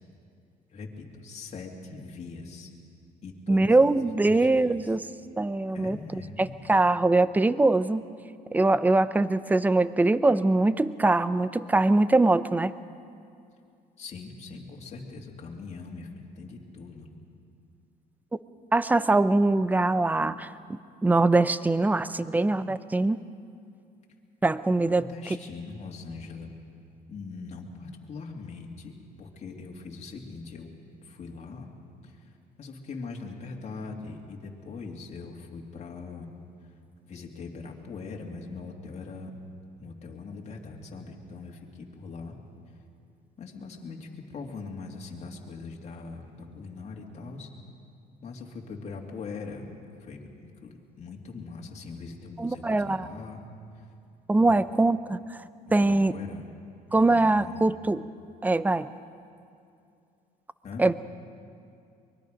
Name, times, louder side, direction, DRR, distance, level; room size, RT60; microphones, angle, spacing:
voice 1, 0.7-2.7 3.2-3.9 4.2-4.9 5.7-6.7 14.0-17.1 24.9-26.5 27.1-30.7 31.0-31.7 32.0-36.3 36.6-36.7 37.0-39.3 39.8-42.4 42.7-42.8 43.4-47.5 48.2-49.7 50.0-53.4 53.7-53.9 54.4-54.6 55.7-56.4 56.9-57.7 60.6-60.8, left 4 dB, 40° left, 0 dB, 2.6 m, -41 dB
voice 2, 3.5-5.1 5.4-8.1 8.5-12.7 18.7-23.2 24.4-25.1 52.4-53.1 54.3-55.2 55.7-56.1 56.9-58.0 58.4-58.9 60.8-60.9, right 2 dB, 10° right, 15 dB, 0.5 m, -23 dB
24.0 x 21.0 x 5.2 m, 2.4 s
cardioid pair, 110°, 17 cm